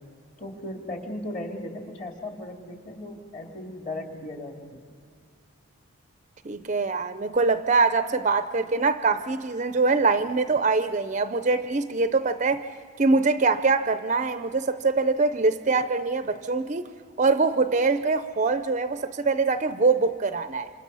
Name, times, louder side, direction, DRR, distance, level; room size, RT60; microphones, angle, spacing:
voice 1, 0.4-4.8, left 1 dB, 35° left, 2.5 m, -36 dB
voice 2, 6.4-12.7 13.0-16.9 17.2-20.7, right 3 dB, 35° right, 0.5 m, -23 dB
27.5 x 27.0 x 5.5 m
head